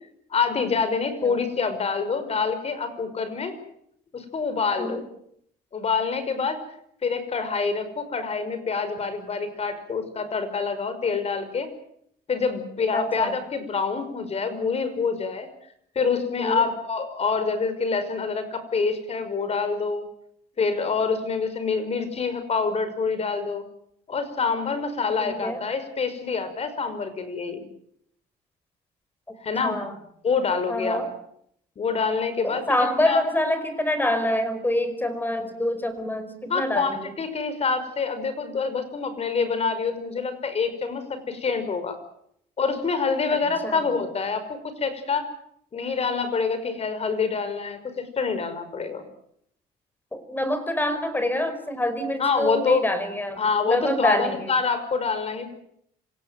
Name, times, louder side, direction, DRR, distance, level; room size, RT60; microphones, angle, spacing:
voice 1, 0.3-3.5 4.1-5.0 5.7-6.6 7.0-11.7 12.3-15.5 16.0-20.0 20.6-23.6 24.1-27.6 29.4-29.8 30.2-31.0 31.8-33.2 36.5-42.0 42.6-44.4 44.8-45.3 45.7-49.1 52.2-52.8 53.4-55.5, left 5 dB, 40° left, 11 dB, 5.7 m, -26 dB
voice 2, 12.9-13.3 16.4-16.7 25.2-25.6 29.6-29.9 30.7-31.1 32.4-37.1 43.6-43.8 50.1-54.5, left 1 dB, 10° left, 11 dB, 5.2 m, -26 dB
26.5 x 17.0 x 9.2 m, 0.71 s
cardioid pair, 110°, 17 cm